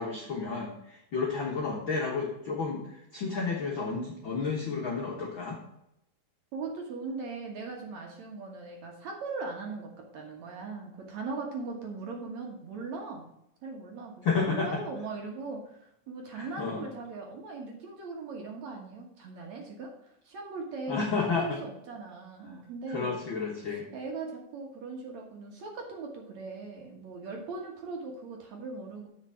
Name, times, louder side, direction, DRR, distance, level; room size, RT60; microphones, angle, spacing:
voice 1, 0.0-5.6 14.2-14.7 16.3-16.9 20.9-21.6 22.5-22.6 22.9-23.8, left 4 dB, 70° left, -1 dB, 1.1 m, -31 dB
voice 2, 6.5-13.3 13.6-15.8 16.1-23.1 23.9-29.1, right 3 dB, 60° right, 1 dB, 2.4 m, -39 dB
8.2 x 6.0 x 5.6 m, 0.81 s
omnidirectional pair, 4.3 m